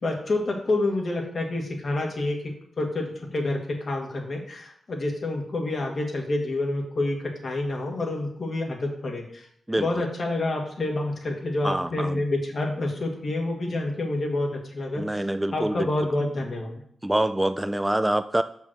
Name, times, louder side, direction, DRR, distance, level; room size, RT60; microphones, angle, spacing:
voice 1, 0.0-2.4 2.8-9.5 9.8-15.2 15.5-16.8, left 2 dB, 55° left, 1 dB, 1.9 m, -28 dB
voice 2, 9.7-10.0 11.6-12.2 15.0-15.9 17.0-18.4, right 1 dB, 10° right, 11 dB, 0.3 m, -25 dB
6.3 x 5.6 x 6.2 m, 0.66 s
cardioid pair, 80°, 0 cm